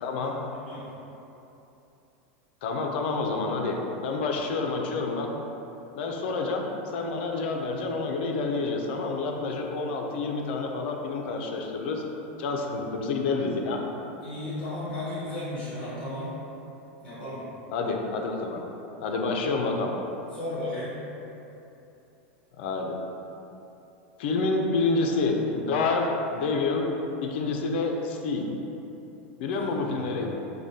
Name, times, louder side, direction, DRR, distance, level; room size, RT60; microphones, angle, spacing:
voice 1, 0.0-0.3 2.6-5.3 5.9-6.6 6.9-12.0 12.4-13.8 17.7-18.6 19.0-20.0 22.6-23.0 24.2-26.9 27.2-28.5 29.4-30.3, left 3 dB, 65° left, 1 dB, 0.4 m, -28 dB
voice 2, 0.5-0.9 6.3-6.4 14.2-16.4 17.0-17.5 20.3-21.0 29.5-30.3, left 1 dB, 15° left, -10 dB, 1.1 m, -35 dB
4.7 x 2.2 x 2.7 m, 3.0 s
supercardioid pair, 155°, 6 cm